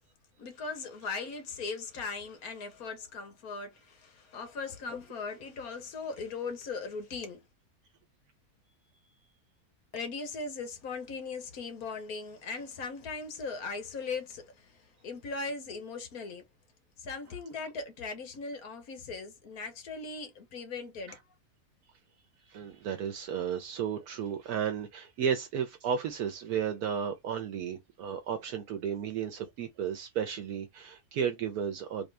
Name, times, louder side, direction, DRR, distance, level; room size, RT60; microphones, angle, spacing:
voice 1, 0.4-7.4 9.9-16.4 17.0-21.2, left 4 dB, 70° left, 1.5 m, -39 dB
voice 2, 22.5-32.1, right 8 dB, 75° right, 1.2 m, -33 dB
3.5 x 2.7 x 3.3 m
omnidirectional pair, 1.6 m